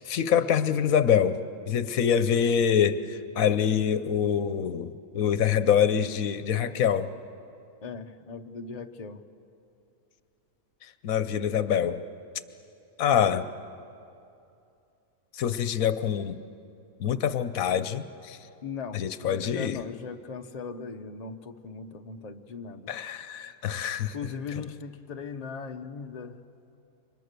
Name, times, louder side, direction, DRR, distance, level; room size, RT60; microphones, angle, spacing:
voice 1, 0.0-1.4 1.7-7.1 10.8-12.0 13.0-13.5 15.3-16.4 17.0-18.4 18.9-19.8 22.9-24.1, left 8 dB, 80° left, 12 dB, 1.2 m, -25 dB
voice 2, 7.8-9.2 18.6-22.9 24.1-26.4, left 5 dB, 35° left, 6 dB, 0.9 m, -39 dB
29.0 x 25.0 x 6.8 m, 2.7 s
omnidirectional pair, 1.5 m